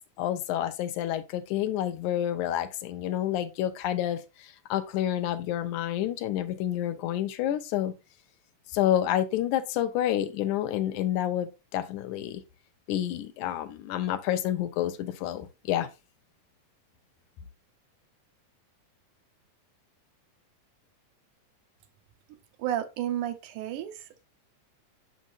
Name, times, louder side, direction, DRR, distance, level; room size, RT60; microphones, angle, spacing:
voice 1, 0.2-7.9 8.7-12.4 12.9-15.9, left 12 dB, 80° left, 2.1 m, -29 dB
voice 2, 22.6-24.2, right 11 dB, 80° right, 2.2 m, -32 dB
6.3 x 6.2 x 2.6 m
omnidirectional pair, 3.5 m